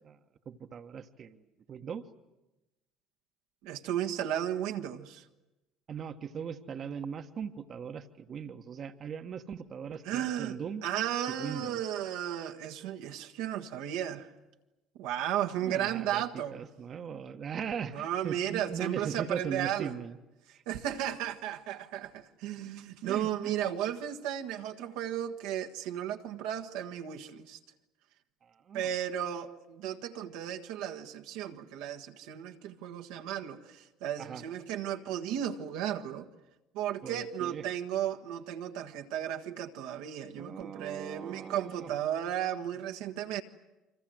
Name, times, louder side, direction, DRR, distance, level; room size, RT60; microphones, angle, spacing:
voice 1, 0.4-1.4 1.7-2.1 5.9-10.8 11.3-11.8 15.6-20.2 20.5-20.6 23.0-23.5 28.4-28.9 34.2-34.4 37.0-37.6 40.3-41.9, right 7 dB, 45° right, 1.4 m, -39 dB
voice 2, 3.6-5.2 10.0-14.3 15.0-16.6 17.9-19.9 20.7-27.6 28.7-36.3 36.7-43.4, right 10 dB, 70° right, 1.5 m, -34 dB
28.0 x 25.5 x 7.9 m
hypercardioid pair, 65°, 0 cm